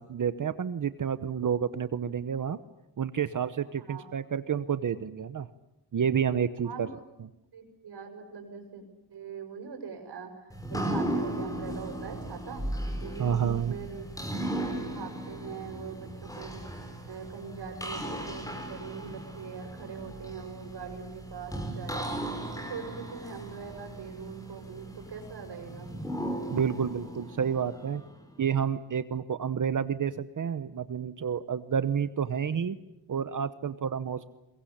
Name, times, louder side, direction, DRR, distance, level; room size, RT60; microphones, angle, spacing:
voice 1, 0.0-2.6 3.0-5.5 5.9-6.9 13.2-13.7 26.5-28.0 28.4-32.8 33.1-34.3, right 7 dB, 50° right, 13 dB, 1.0 m, -29 dB
voice 2, 3.8-4.1 6.6-6.9 7.5-8.8 9.1-12.6 13.0-14.1 14.6-22.1 22.5-25.9, right 5 dB, 80° right, 5 dB, 6.4 m, -42 dB
sound 1, 10.5-28.3, right 1 dB, 10° left, 4.8 m, -37 dB
23.5 x 22.5 x 10.0 m, 0.91 s
wide cardioid pair, 140°, 40 cm